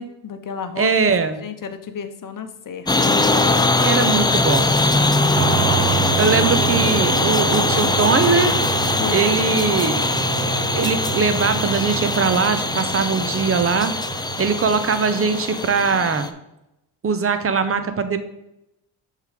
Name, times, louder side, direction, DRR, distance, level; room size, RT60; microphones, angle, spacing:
voice 1, 0.0-0.9 1.4-3.4 3.9-4.5 5.2-5.6 9.0-9.3, left 6 dB, 45° left, 8 dB, 0.9 m, -33 dB
voice 2, 0.8-1.4 3.8-4.7 6.2-8.5 8.9-10.1 10.7-13.9 14.4-16.3 17.0-18.2, right 5 dB, 30° right, 10 dB, 0.8 m, -21 dB
sound 1, 2.9-16.3, left 2 dB, 10° left, 0.4 m, -21 dB
sound 2, 5.4-14.9, right 13 dB, 75° right, 0.5 m, -28 dB
6.1 x 3.8 x 5.0 m, 0.89 s
cardioid pair, 85°, 46 cm